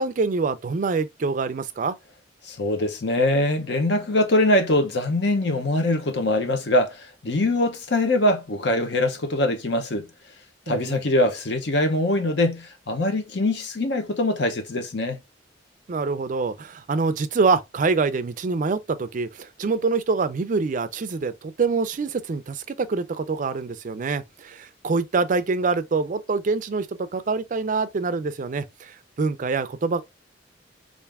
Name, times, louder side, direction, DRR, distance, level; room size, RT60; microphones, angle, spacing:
voice 1, 0.0-2.0 10.7-11.0 15.9-30.0, right 4 dB, 45° right, 0.4 m, -25 dB
voice 2, 2.4-10.1 10.7-15.2, left 1 dB, 65° left, 0.8 m, -23 dB
3.4 x 2.5 x 3.4 m
head